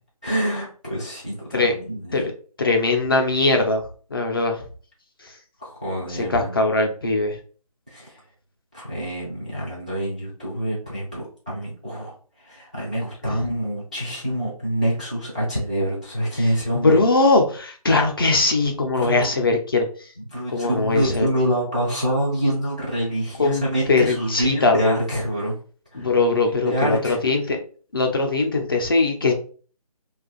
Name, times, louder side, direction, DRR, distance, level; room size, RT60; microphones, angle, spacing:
voice 1, 0.2-2.3 5.6-6.5 7.9-8.2 8.7-17.0 18.9-19.3 20.2-25.6 25.9-26.1 26.6-27.2, right 1 dB, 15° right, -8 dB, 0.4 m, -26 dB
voice 2, 2.6-3.8 4.1-4.6 6.3-7.4 13.3-13.4 16.7-19.9 20.5-21.3 23.4-23.6 23.9-25.0 25.9-27.6 27.9-29.3, left 3 dB, 35° left, 3 dB, 0.6 m, -20 dB
2.6 x 2.3 x 3.8 m, 0.41 s
figure-of-eight pair, 165°, 20 cm